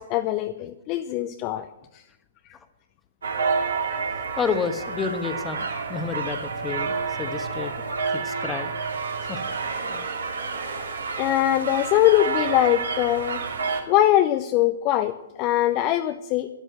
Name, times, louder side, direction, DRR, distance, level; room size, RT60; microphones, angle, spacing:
voice 1, 0.0-2.0 7.9-8.0 11.2-13.4 13.9-16.5, left 13 dB, 30° left, 9 dB, 0.6 m, -22 dB
sound 1, 3.2-13.8, right 5 dB, 65° right, 2.7 m, -29 dB
voice 2, 4.4-7.7 8.1-8.7 9.3-9.4, left 6 dB, 15° left, 9 dB, 1.1 m, -30 dB
12.5 x 11.0 x 7.8 m, 0.97 s
figure-of-eight pair, 120°, 0 cm